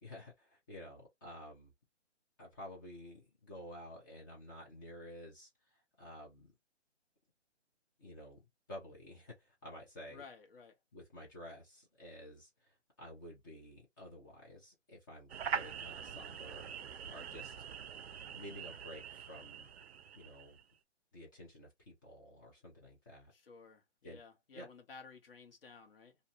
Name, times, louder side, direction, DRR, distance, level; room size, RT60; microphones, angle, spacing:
voice 1, 0.0-1.7 2.4-6.5 8.0-10.2 10.9-17.6 18.3-19.7 20.1-20.6 21.1-23.3 24.0-24.2 24.5-24.7, left 1 dB, 15° left, 0.8 m, -52 dB
voice 2, 10.1-10.7 23.3-26.2, left 5 dB, 50° left, 1.1 m, -55 dB
sound 1, 15.3-20.6, right 7 dB, 60° right, 0.5 m, -43 dB
2.5 x 2.5 x 2.7 m
hypercardioid pair, 160°, 36 cm